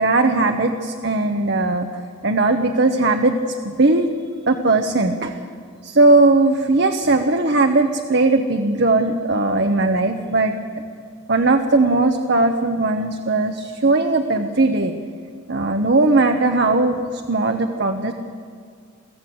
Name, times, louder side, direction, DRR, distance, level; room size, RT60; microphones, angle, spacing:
voice 1, 0.0-1.9 2.2-3.4 3.6-4.1 4.5-5.3 5.8-10.5 11.3-14.9 15.5-18.1, right 2 dB, 50° right, 4 dB, 1.0 m, -18 dB
23.5 x 15.5 x 7.8 m, 2.1 s
head